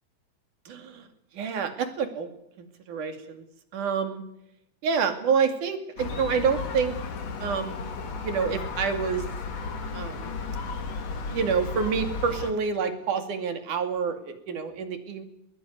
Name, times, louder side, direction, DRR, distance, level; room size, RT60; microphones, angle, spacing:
voice 1, 0.7-1.1 1.3-2.3 2.6-3.4 3.7-4.2 4.8-7.0 7.4-7.8 8.1-9.2 9.9-10.3 11.3-15.2, right 6 dB, 65° right, 7 dB, 3.8 m, -28 dB
Gull seagull, 6.0-12.5, left 4 dB, 55° left, 3.0 m, -34 dB
21.5 x 20.5 x 9.5 m, 0.80 s
omnidirectional pair, 3.8 m